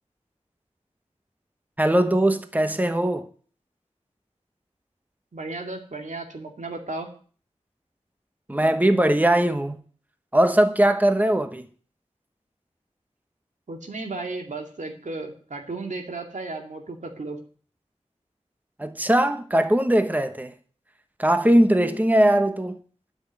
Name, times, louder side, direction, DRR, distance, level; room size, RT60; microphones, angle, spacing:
voice 1, 1.8-3.3 8.5-9.8 10.3-11.7 18.8-20.5 21.2-22.8, right 1 dB, 15° right, 1.1 m, -20 dB
voice 2, 5.3-7.1 13.7-17.4, right 3 dB, 90° right, 2.4 m, -34 dB
12.0 x 6.3 x 9.3 m
wide cardioid pair, 60°, 12 cm